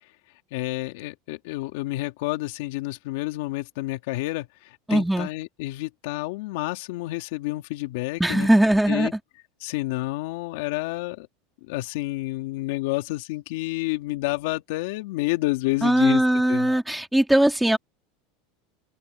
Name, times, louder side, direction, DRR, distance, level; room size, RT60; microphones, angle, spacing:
voice 1, 0.5-4.5 4.9-8.5 8.9-9.1 9.6-11.3 11.7-16.2 16.5-16.7, left 19 dB, 70° left, 3.1 m, -29 dB
voice 2, 4.9-5.3 8.2-9.1 15.8-17.8, right 1 dB, 5° right, 2.7 m, -20 dB
open air
supercardioid pair, 145°, 0 cm